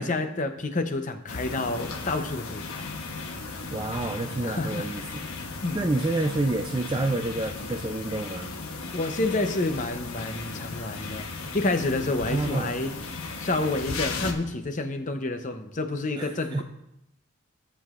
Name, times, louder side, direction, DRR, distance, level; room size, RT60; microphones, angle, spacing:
voice 1, 0.0-2.9 4.4-4.9 5.6-5.9 8.9-16.6, left 2 dB, 35° left, 7 dB, 0.7 m, -29 dB
sound 1, 1.3-14.3, left 3 dB, 85° left, 1.0 m, -36 dB
voice 2, 3.7-5.0 5.5-8.5 12.3-12.7 16.2-16.6, right 2 dB, 20° right, 3 dB, 0.4 m, -28 dB
16.0 x 7.5 x 2.5 m, 0.86 s
head